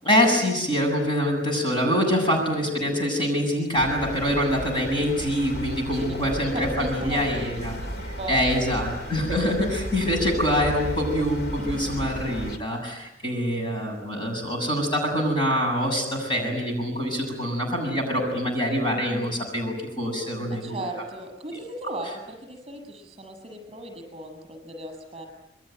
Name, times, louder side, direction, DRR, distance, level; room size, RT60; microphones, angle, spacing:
voice 1, 0.0-7.8 8.3-20.8 21.5-21.6, equal, 25° left, 1 dB, 7.6 m, -25 dB
sound 1, 3.7-12.6, right 1 dB, 60° left, 2.5 m, -34 dB
voice 2, 6.5-8.7 11.6-11.9 20.5-25.3, right 1 dB, 30° right, 3 dB, 7.6 m, -37 dB
27.5 x 22.5 x 9.2 m, 0.90 s
head